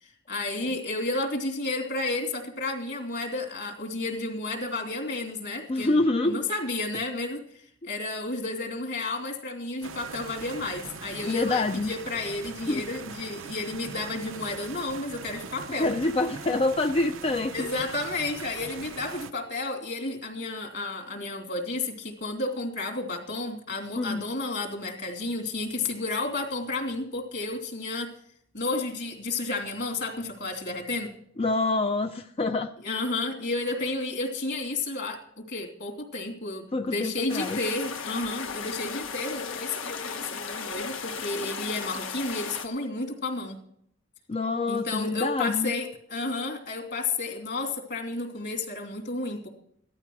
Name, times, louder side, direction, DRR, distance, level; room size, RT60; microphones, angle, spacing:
voice 1, 0.0-15.9 17.5-28.1 28.5-31.1 32.8-43.6 44.7-49.5, left 2 dB, 55° left, 3 dB, 2.8 m, -32 dB
voice 2, 5.7-6.4 11.2-11.9 12.7-12.8 15.8-17.7 24.0-24.3 31.4-32.7 36.7-37.6 44.3-45.7, left 2 dB, 30° left, 7 dB, 0.4 m, -26 dB
sound 1, 9.8-19.3, right 5 dB, 80° right, 0.7 m, -41 dB
sound 2, 37.3-42.7, left 5 dB, 80° left, 1.3 m, -36 dB
16.0 x 12.5 x 4.7 m, 0.69 s
head